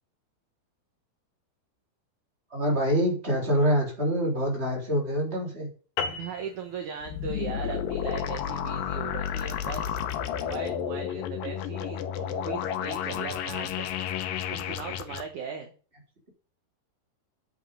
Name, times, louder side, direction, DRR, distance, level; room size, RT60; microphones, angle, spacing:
voice 1, 2.5-5.7, equal, 15° right, -2 dB, 3.6 m, -25 dB
sound 1, 6.0-10.7, left 5 dB, 90° left, 3.1 m, -39 dB
voice 2, 6.1-10.0 10.4-13.9 14.5-15.7, right 7 dB, 60° right, 4 dB, 2.2 m, -38 dB
sound 2, 7.0-15.2, left 9 dB, 70° left, 2.4 m, -31 dB
8.4 x 8.2 x 5.6 m, 0.40 s
omnidirectional pair, 4.5 m